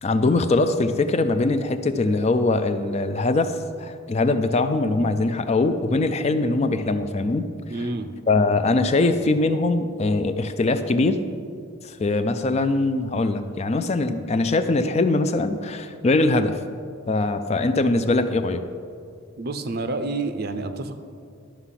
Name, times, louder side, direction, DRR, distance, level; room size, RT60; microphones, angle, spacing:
voice 1, 0.0-7.9 8.3-11.2 11.8-16.6 17.1-18.6, left 2 dB, 30° left, 9 dB, 0.3 m, -22 dB
voice 2, 7.7-8.1 19.4-21.0, right 3 dB, 45° right, 9 dB, 0.5 m, -28 dB
11.5 x 5.9 x 5.7 m, 2.3 s
head